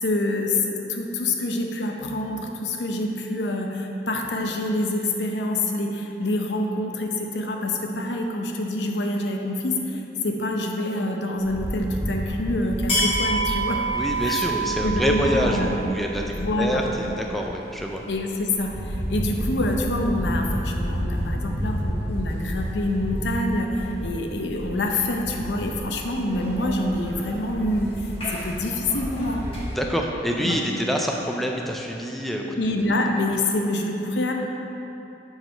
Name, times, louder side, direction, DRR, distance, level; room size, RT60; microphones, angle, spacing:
voice 1, 0.0-13.8 14.2-14.5 14.8-15.8 16.2-16.8 18.1-29.4 30.4-30.6 32.6-34.4, left 1 dB, 80° left, 2 dB, 0.7 m, -26 dB
sound 1, 11.4-29.8, right 1 dB, 30° left, 1.3 m, -29 dB
voice 2, 13.9-18.0 29.7-32.6, equal, ahead, 0 dB, 0.4 m, -26 dB
7.1 x 4.0 x 5.1 m, 3.0 s
head